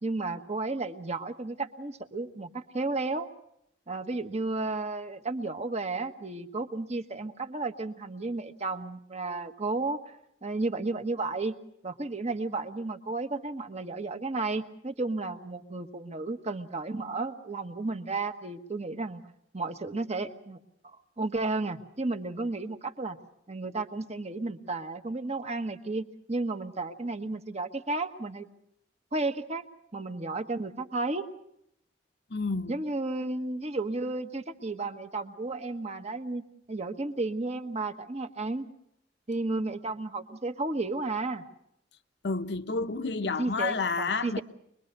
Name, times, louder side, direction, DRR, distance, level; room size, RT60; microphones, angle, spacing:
voice 1, 0.0-3.3 3.9-10.0 10.4-11.5 11.8-19.2 19.5-20.6 21.2-23.2 23.5-28.5 29.1-29.6 29.9-31.3 32.7-38.7 39.3-41.4 43.4-44.4, right 3 dB, 40° right, 1.3 m, -33 dB
voice 2, 32.3-32.7 42.2-44.4, left 4 dB, 65° left, 0.9 m, -30 dB
25.0 x 21.5 x 6.7 m
head